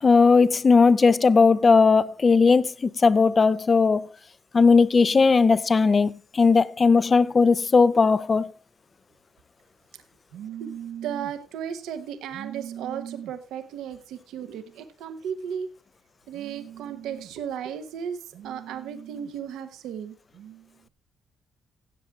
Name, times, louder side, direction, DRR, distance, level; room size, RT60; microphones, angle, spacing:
voice 1, 0.0-4.1 4.5-8.5, left 4 dB, 35° left, 0.5 m, -18 dB
voice 2, 10.3-15.7 16.3-20.9, right 8 dB, 85° right, 1.1 m, -35 dB
16.0 x 7.7 x 3.5 m
cardioid pair, 90°, 0 cm